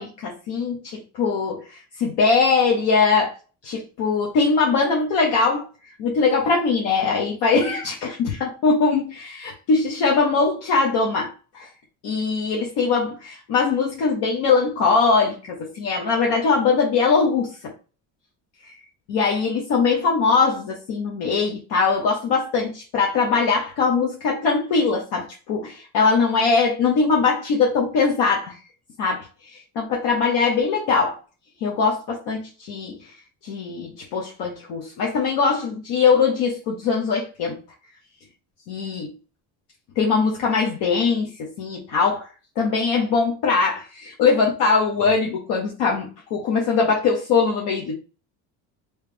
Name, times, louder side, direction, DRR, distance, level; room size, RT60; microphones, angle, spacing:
voice 1, 0.0-3.3 3.6-5.6 6.0-11.7 12.0-17.7 18.6-18.7 19.1-28.6 29.0-31.2 31.6-33.1 33.4-37.6 38.7-39.1 40.0-42.3 42.6-47.9, left 4 dB, 75° left, 1.0 m, -21 dB
3.2 x 3.2 x 3.3 m
cardioid pair, 120°, 40 cm